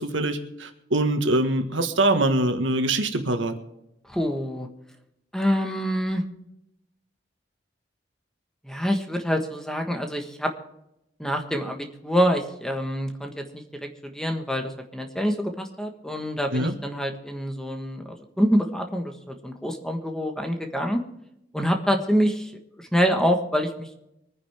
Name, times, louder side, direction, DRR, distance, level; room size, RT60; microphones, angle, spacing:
voice 1, 0.0-3.5 16.5-16.7, right 2 dB, 85° right, 6 dB, 1.6 m, -23 dB
voice 2, 4.1-4.7 5.3-6.2 8.6-10.5 11.2-21.0 21.5-22.5 22.8-23.9, equal, 5° left, 4 dB, 1.4 m, -26 dB
24.0 x 10.0 x 3.6 m, 0.84 s
head